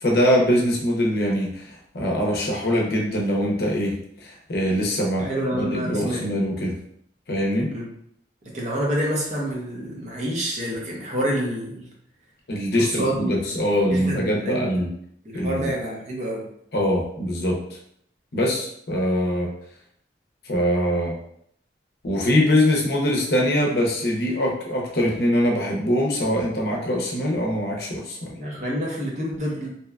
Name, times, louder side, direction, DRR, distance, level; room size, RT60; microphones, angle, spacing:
voice 1, 0.0-1.6 1.9-6.8 7.3-7.7 12.5-14.9 15.3-15.7 16.7-17.6 18.3-19.5 20.4-21.2 22.0-28.3, equal, 60° left, -1 dB, 0.6 m, -23 dB
voice 2, 5.2-6.2 7.7-7.9 8.5-11.9 12.8-13.5 13.9-14.7 15.3-16.5 28.4-29.7, right 1 dB, 40° right, -2 dB, 0.6 m, -27 dB
2.7 x 2.2 x 2.3 m, 0.69 s
head